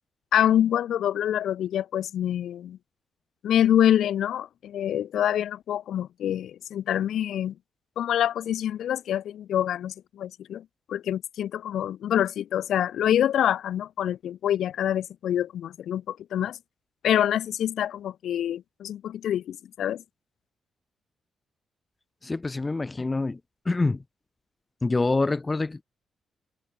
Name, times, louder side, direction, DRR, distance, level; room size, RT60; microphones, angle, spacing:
voice 1, 0.3-2.8 3.4-7.5 8.0-10.6 10.9-16.6 17.0-20.0, left 10 dB, 75° left, 0.8 m, -26 dB
voice 2, 22.2-23.4 23.7-24.0 24.8-25.8, left 3 dB, 20° left, 0.4 m, -26 dB
cardioid pair, 130°, 0 cm